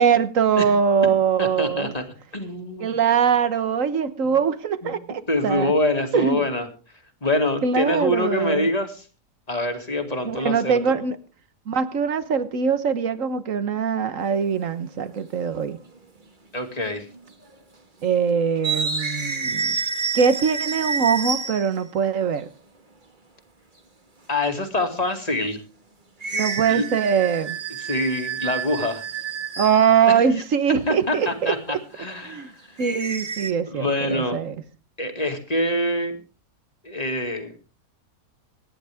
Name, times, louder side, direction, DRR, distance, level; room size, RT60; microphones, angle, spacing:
voice 1, 0.0-1.9 2.8-5.7 6.1-6.4 7.6-8.7 10.2-11.2 11.7-15.8 18.0-19.8 20.1-22.5 26.3-27.6 29.6-31.8 32.2-32.5 32.8-34.5, right 6 dB, 55° right, 1.5 m, -22 dB
voice 2, 1.4-2.1 2.3-2.9 4.2-4.4 4.8-5.0 5.3-6.7 7.2-9.1 9.5-10.8 16.5-17.1 24.3-25.6 26.7-26.8 27.8-29.0 30.1-30.2 30.9-31.6 32.0-32.8 33.7-34.4 35.0-36.2 36.8-37.5, left 1 dB, 25° left, 2.5 m, -25 dB
sound 1, 14.2-14.5 15.7-15.8 16.8-17.2 17.4-17.6 18.6-21.8 26.2-30.0 32.8-33.5, right 5 dB, 30° right, 1.8 m, -29 dB
25.5 x 10.5 x 3.6 m
omnidirectional pair, 1.7 m